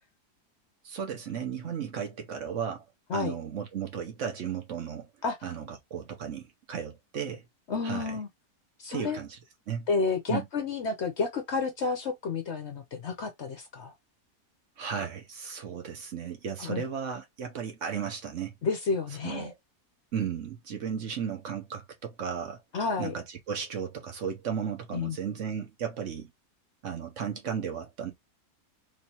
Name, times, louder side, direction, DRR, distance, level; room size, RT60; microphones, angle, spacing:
voice 1, 0.8-2.9 3.1-5.1 5.4-7.4 7.8-8.2 8.9-9.4 9.7-9.9 10.3-10.5 14.8-18.5 19.2-19.5 20.1-22.6 23.0-26.3 26.8-28.1, right 7 dB, 60° right, 1.0 m, -35 dB
voice 2, 7.7-8.3 8.8-9.2 9.9-13.9 16.6-16.8 18.6-19.5 22.7-23.1 24.9-25.2, left 4 dB, 60° left, 0.8 m, -30 dB
3.3 x 3.1 x 2.8 m
omnidirectional pair, 1.7 m